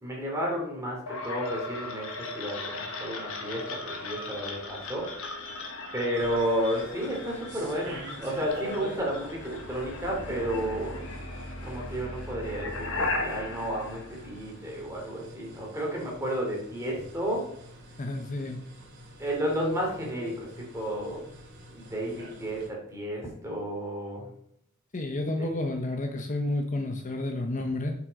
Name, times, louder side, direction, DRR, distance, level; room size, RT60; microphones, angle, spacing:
voice 1, 0.0-5.1 5.9-11.0 11.6-17.5 19.2-21.3 21.7-24.3 25.4-25.5, equal, 15° right, -2 dB, 2.8 m, -32 dB
sound 1, 1.1-14.9, left 2 dB, 65° left, 1.3 m, -37 dB
sound 2, 6.1-22.7, right 1 dB, 55° right, 2.5 m, -47 dB
voice 2, 18.0-18.6 24.9-27.9, left 2 dB, 35° left, 5 dB, 0.8 m, -30 dB
7.3 x 6.0 x 5.2 m, 0.72 s
head